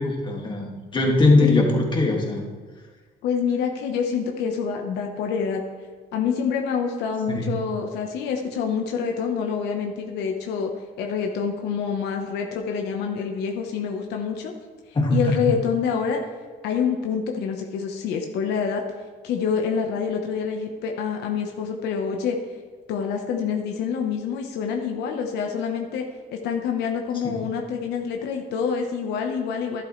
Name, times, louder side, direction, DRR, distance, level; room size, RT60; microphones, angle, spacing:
voice 1, 0.0-2.4 7.3-7.5 14.9-15.2 27.2-27.4, left 2 dB, 30° left, -1 dB, 2.3 m, -21 dB
voice 2, 3.2-5.6 6.1-10.7 11.0-14.5 15.1-16.2 16.6-18.8 19.2-22.4 22.9-26.1 26.4-29.8, left 6 dB, 80° left, 2 dB, 1.2 m, -26 dB
12.0 x 11.5 x 3.3 m, 1.4 s
cardioid pair, 110°, 17 cm